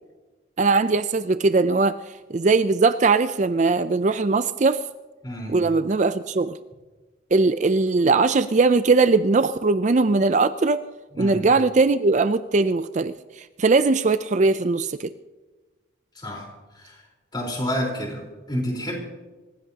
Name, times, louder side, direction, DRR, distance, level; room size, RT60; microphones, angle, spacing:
voice 1, 0.6-2.0 2.3-4.8 5.5-6.6 7.3-10.8 11.2-15.1, right 3 dB, 35° right, 12 dB, 0.4 m, -20 dB
voice 2, 5.2-5.6 11.1-11.5 16.1-17.0 17.3-19.0, equal, 20° left, -1 dB, 4.1 m, -30 dB
26.5 x 15.5 x 2.9 m, 1.2 s
head